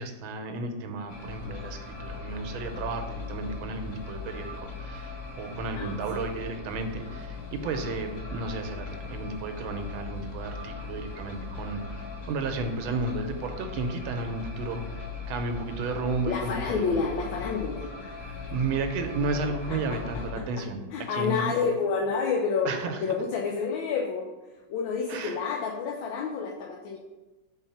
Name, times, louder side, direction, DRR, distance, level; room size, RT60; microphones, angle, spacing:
voice 1, 0.0-14.8 15.3-17.0 18.5-20.8 21.1-21.5 22.6-23.0 25.1-25.4, right 3 dB, 90° right, 6 dB, 1.5 m, -33 dB
sound 1, 1.1-20.3, left 4 dB, 35° left, 1.4 m, -39 dB
voice 2, 5.8-6.2 7.7-7.9 16.3-18.3 19.7-22.7 23.0-24.3 24.7-27.0, left 5 dB, 80° left, -1 dB, 1.3 m, -30 dB
4.4 x 3.9 x 5.6 m, 1.1 s
omnidirectional pair, 2.2 m